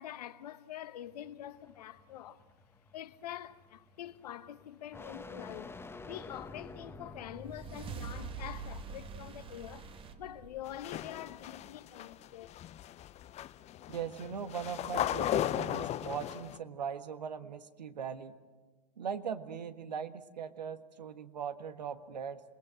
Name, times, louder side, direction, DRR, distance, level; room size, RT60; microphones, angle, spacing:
voice 1, 0.0-2.5 2.9-12.6, left 11 dB, 70° left, 1.1 m, -45 dB
sound 1, 1.1-8.1, left 3 dB, 10° left, 1.3 m, -50 dB
sound 2, 7.1-11.7, right 5 dB, 25° right, 1.5 m, -45 dB
sound 3, 10.7-16.6, left 12 dB, 30° left, 0.7 m, -36 dB
voice 2, 13.9-18.4 19.0-22.4, right 7 dB, 80° right, 1.5 m, -40 dB
27.5 x 20.0 x 7.7 m
hypercardioid pair, 95°, 21 cm